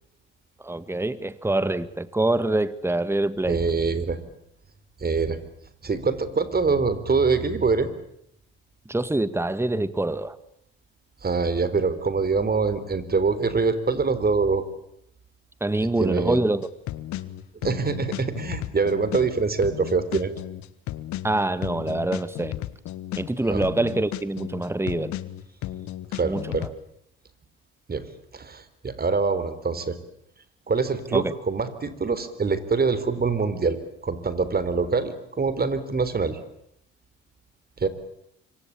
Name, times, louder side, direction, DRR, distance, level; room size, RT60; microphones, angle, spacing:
voice 1, 0.6-3.6 8.9-10.4 15.6-16.7 21.2-22.6 23.1-25.1 26.2-26.7 31.1-31.3, right 2 dB, 10° right, 15 dB, 1.8 m, -25 dB
voice 2, 3.5-4.2 5.0-5.4 5.8-7.9 11.2-14.6 16.0-16.4 17.6-20.3 23.5-23.6 26.1-26.7 27.9-28.0 28.3-30.0 30.7-33.8 34.0-36.4 37.8-37.9, right 4 dB, 30° right, 13 dB, 3.9 m, -24 dB
sound 1, 16.6-26.7, left 14 dB, 65° left, 1.6 m, -34 dB
26.0 x 24.5 x 8.7 m, 0.75 s
hypercardioid pair, 60°, 31 cm